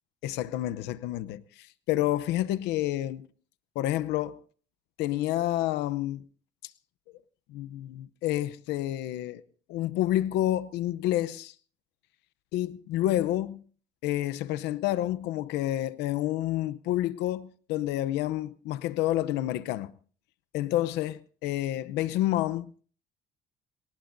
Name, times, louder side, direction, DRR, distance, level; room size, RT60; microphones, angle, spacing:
voice 1, 0.2-3.3 3.7-4.4 5.0-6.2 7.5-9.4 9.7-11.5 12.5-13.6 14.0-19.9 20.5-22.7, left 14 dB, 90° left, 0.8 m, -29 dB
28.0 x 18.0 x 2.7 m
cardioid pair, 110°, 17 cm